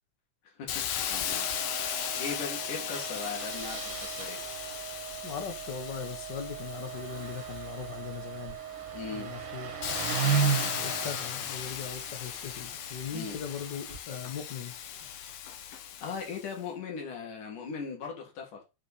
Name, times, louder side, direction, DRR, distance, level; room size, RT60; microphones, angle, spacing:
voice 1, 0.6-1.5 2.2-4.4 8.9-9.3 10.2-10.7 13.1-13.4 15.6-18.6, left 5 dB, 80° left, 3.8 m, -39 dB
Hiss, 0.7-8.2 8.8-16.5, left 9 dB, 65° left, 1.8 m, -37 dB
Engine starting, 1.0-1.3 1.5-1.6 1.9-2.0 2.9-14.0, right 6 dB, 45° right, 1.9 m, -36 dB
sound 1, 1.2-11.2, right 12 dB, 80° right, 1.7 m, -43 dB
voice 2, 5.2-8.6 9.1-9.8 10.8-14.8, left 7 dB, 50° left, 1.4 m, -39 dB
7.5 x 5.0 x 6.8 m
omnidirectional pair, 3.6 m